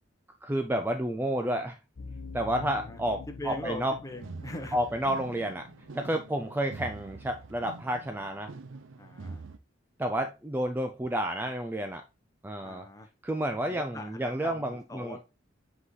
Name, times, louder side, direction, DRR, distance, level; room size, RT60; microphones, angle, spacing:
voice 1, 0.4-1.8 2.3-3.9 4.7-5.7 5.9-8.5 10.0-12.0 12.4-12.9 13.2-15.2, right 1 dB, 10° right, 5 dB, 0.3 m, -30 dB
Horror Ambiance, 2.0-6.7, left 4 dB, 90° left, 0.7 m, -46 dB
voice 2, 2.6-3.0 3.4-4.8 9.0-9.4 12.6-13.1 13.7-15.2, left 2 dB, 15° left, 4 dB, 0.9 m, -41 dB
sound 1, 4.1-9.6, right 3 dB, 85° right, 0.6 m, -45 dB
7.6 x 4.1 x 3.1 m, 0.28 s
head